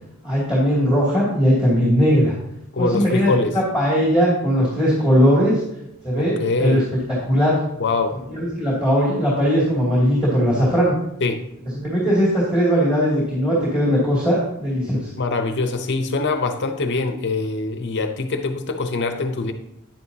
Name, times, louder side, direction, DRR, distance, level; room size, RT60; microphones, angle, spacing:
voice 1, 0.2-2.3 2.8-5.6 6.0-6.8 7.2-7.6 8.3-10.9 11.7-15.1, equal, 5° right, -6 dB, 2.5 m, -19 dB
voice 2, 2.7-3.6 6.2-6.8 7.8-8.1 11.2-11.4 15.2-19.5, left 3 dB, 55° left, 7 dB, 0.7 m, -23 dB
10.0 x 9.5 x 2.8 m, 0.82 s
head